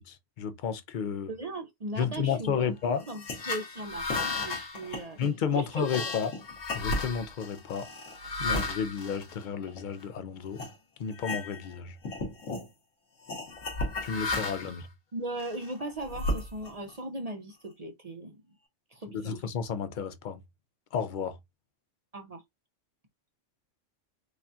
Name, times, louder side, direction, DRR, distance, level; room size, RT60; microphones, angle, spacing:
voice 1, 0.4-1.3 2.0-3.0 5.2-6.3 6.7-7.9 8.4-10.6 11.0-12.0 14.0-14.9 19.1-20.4 20.9-21.4, left 7 dB, 55° left, 0.6 m, -32 dB
voice 2, 1.3-5.2 5.5-6.1 15.1-18.4 18.9-19.4 22.1-22.4, right 2 dB, 40° right, 0.6 m, -38 dB
sound 1, 3.0-10.0 10.5-10.7 11.1-11.8 12.0-12.7 13.3-14.8 15.4-16.9, left 2 dB, 85° left, 1.8 m, -34 dB
4.8 x 2.3 x 2.7 m
omnidirectional pair, 1.3 m